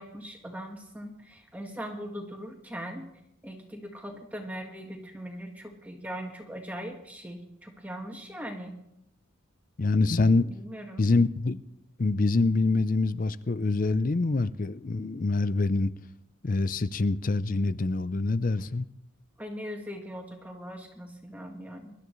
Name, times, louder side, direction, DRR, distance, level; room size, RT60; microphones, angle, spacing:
voice 1, 0.0-3.1 3.4-8.7 10.5-11.0 19.4-21.9, equal, 10° right, 1.5 m, -40 dB
voice 2, 9.8-10.5 11.0-11.6 12.0-15.9 16.4-18.9, left 3 dB, 40° left, 0.5 m, -25 dB
23.5 x 12.5 x 3.2 m
head